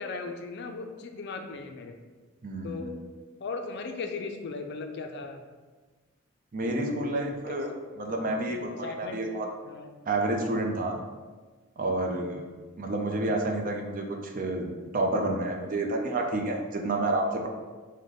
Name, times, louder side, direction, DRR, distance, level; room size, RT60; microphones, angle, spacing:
voice 1, 0.0-2.0 2.6-3.0 3.4-5.4 6.6-7.7 8.1-8.4 8.8-9.2 9.6-10.0 12.0-12.4, left 4 dB, 55° left, 5 dB, 0.4 m, -38 dB
voice 2, 2.4-3.0 6.5-7.7 8.0-9.5 10.1-11.0 11.8-12.4 12.8-17.5, right 2 dB, 45° right, 2 dB, 0.5 m, -29 dB
4.8 x 2.2 x 3.9 m, 1.3 s
head